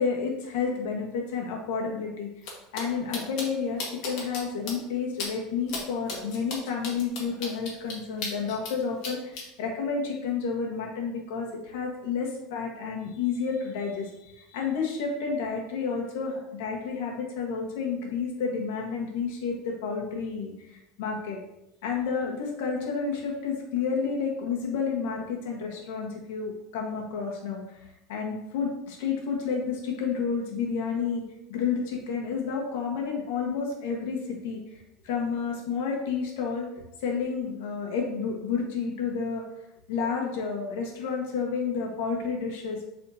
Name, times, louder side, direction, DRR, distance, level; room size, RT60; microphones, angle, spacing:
voice 1, 0.0-2.3 2.7-21.4 21.8-27.8 28.1-31.2 31.5-34.8 35.0-36.7 37.0-39.4 39.9-42.8, left 5 dB, 85° left, -1 dB, 1.6 m, -30 dB
sound 1, 2.4-2.5 2.7-2.8 3.1-3.4 3.8-4.4 4.7-4.8 5.2-5.3 5.7-5.8 6.1-8.7 9.0-9.4, left 4 dB, 60° left, 1.9 m, -34 dB
7.8 x 4.2 x 2.9 m, 0.87 s
supercardioid pair, 150°, 0 cm